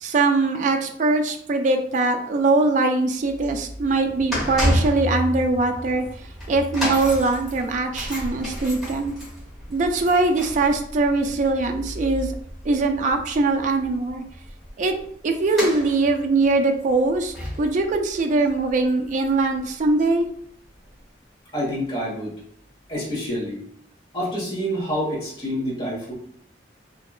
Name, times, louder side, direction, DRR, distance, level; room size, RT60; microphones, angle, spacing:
voice 1, 0.0-6.0 6.5-9.2 9.7-12.3 12.6-14.2 14.8-14.9 15.2-20.3, right 3 dB, 45° right, 4 dB, 0.3 m, -22 dB
sound 1, 3.2-19.6 19.8-20.1 20.9-21.0, equal, ahead, 1.3 m, -31 dB
voice 2, 21.5-22.3 22.9-23.6 24.1-26.1, equal, 25° left, -6 dB, 1.1 m, -27 dB
2.8 x 2.3 x 2.3 m, 0.65 s
head